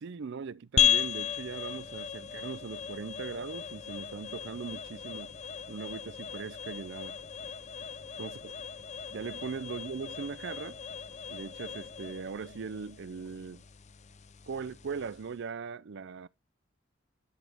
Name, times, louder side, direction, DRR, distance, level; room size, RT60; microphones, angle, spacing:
voice 1, 0.0-5.3 5.7-7.2 8.2-8.5 9.1-10.8 11.3-13.6 14.5-16.3, right 5 dB, 65° right, 0.5 m, -39 dB
sound 1, 0.8-15.4, left 9 dB, 35° left, 0.5 m, -35 dB
11.0 x 5.1 x 3.5 m
head